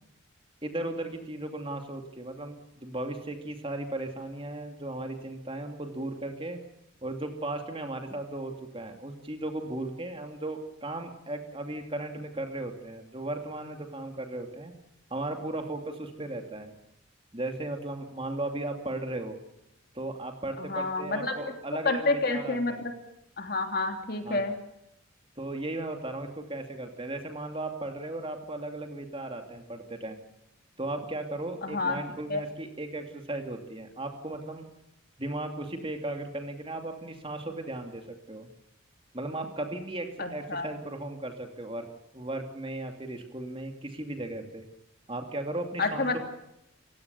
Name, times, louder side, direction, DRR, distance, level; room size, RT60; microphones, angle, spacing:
voice 1, 0.6-6.6 7.0-14.7 15.1-16.7 17.3-19.4 19.9-22.8 24.2-24.4 25.4-30.2 30.8-34.6 35.2-38.5 39.1-44.6 45.1-46.2, right 2 dB, 25° right, 5 dB, 2.6 m, -36 dB
voice 2, 20.6-21.5 21.8-22.7 23.4-24.6 31.6-32.0 32.3-32.4 40.2-40.7 45.8-46.2, left 3 dB, 50° left, 5 dB, 3.2 m, -29 dB
29.0 x 16.5 x 7.0 m, 0.84 s
head